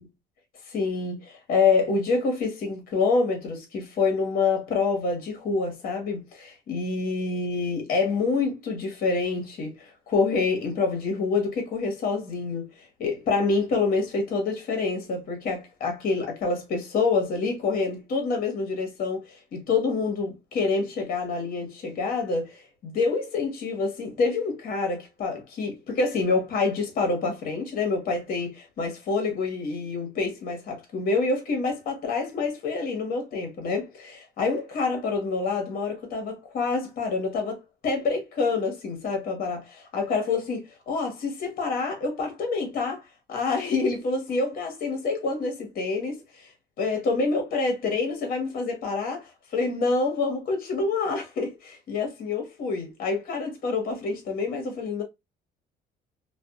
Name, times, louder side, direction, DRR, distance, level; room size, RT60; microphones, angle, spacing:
voice 1, 0.7-43.0 43.3-46.5 46.8-55.0, left 4 dB, 55° left, 1.1 m, -27 dB
2.5 x 2.3 x 2.3 m
cardioid pair, 110°, 17 cm